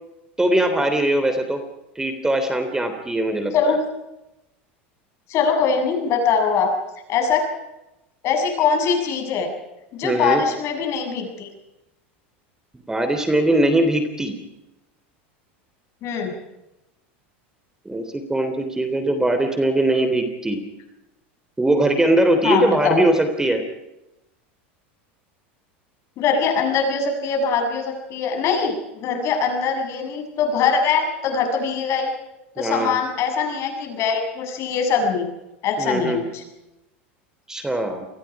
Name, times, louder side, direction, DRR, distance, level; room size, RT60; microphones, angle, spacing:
voice 1, 0.4-1.6 2.0-3.5 10.0-10.4 12.9-14.3 17.9-20.6 21.6-23.6 32.6-33.0 35.8-36.2 37.5-38.1, right 1 dB, 10° right, 7 dB, 3.4 m, -21 dB
voice 2, 5.3-6.7 7.1-7.4 8.2-9.5 9.9-11.5 16.0-16.3 22.4-23.0 26.2-32.1 32.6-35.3 35.6-36.4, left 5 dB, 50° left, 4 dB, 7.2 m, -22 dB
28.0 x 20.5 x 4.9 m, 0.93 s
hypercardioid pair, 105°, 6 cm